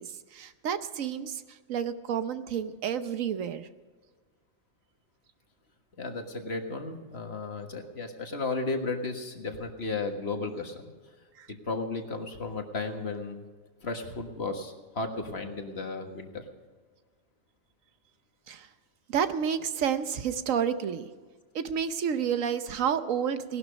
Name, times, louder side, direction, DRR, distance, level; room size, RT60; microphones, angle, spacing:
voice 1, 0.0-3.7 11.4-11.5 18.5-18.7 19.1-21.1 21.5-23.6, right 8 dB, 85° right, 11 dB, 1.2 m, -30 dB
voice 2, 6.0-10.9 11.5-13.4 13.8-16.4, left 3 dB, 55° left, 5 dB, 1.8 m, -34 dB
18.0 x 11.5 x 5.2 m, 1.4 s
omnidirectional pair, 1.3 m